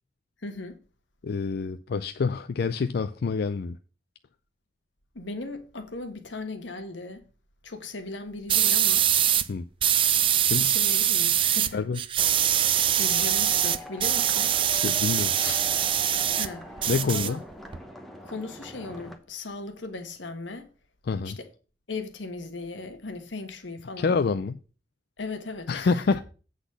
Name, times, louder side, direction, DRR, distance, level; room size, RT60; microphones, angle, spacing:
voice 1, 0.4-0.8 5.1-7.2 7.6-9.1 10.6-11.8 12.7-14.6 16.3-17.4 18.2-20.7 21.2-21.5 21.9-24.2 25.2-26.2, left 3 dB, 85° left, 1.3 m, -37 dB
voice 2, 1.2-3.8 9.5-9.6 10.4-10.7 11.7-12.0 14.7-15.6 16.9-17.4 21.1-21.4 24.0-24.6 25.7-26.2, left 4 dB, 60° left, 0.4 m, -27 dB
sound 1, 8.5-9.5 9.8-11.7 12.0-16.5 16.8-17.8, right 10 dB, 30° right, 0.3 m, -23 dB
sound 2, 12.8-19.2, left 1 dB, ahead, 0.9 m, -43 dB
8.1 x 4.0 x 6.7 m
head